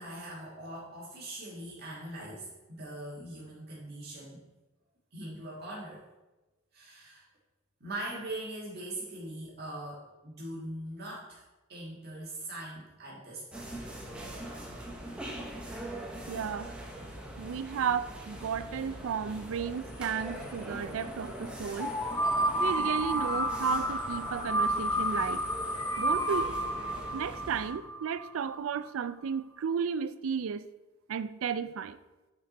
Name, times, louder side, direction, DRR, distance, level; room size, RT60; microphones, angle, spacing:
voice 1, 0.0-4.4 5.1-6.0 6.7-7.3 7.8-11.4 11.7-13.9, right 1 dB, 50° right, 1.6 m, -41 dB
sound 1, 13.5-27.7, right 1 dB, 5° right, 0.9 m, -42 dB
voice 2, 16.3-16.7 17.4-22.0 22.6-25.4 26.0-26.5 27.1-30.6 31.1-32.0, right 7 dB, 85° right, 0.4 m, -33 dB
sound 2, 21.8-28.6, right 1 dB, 15° left, 0.4 m, -31 dB
8.5 x 4.4 x 4.0 m
head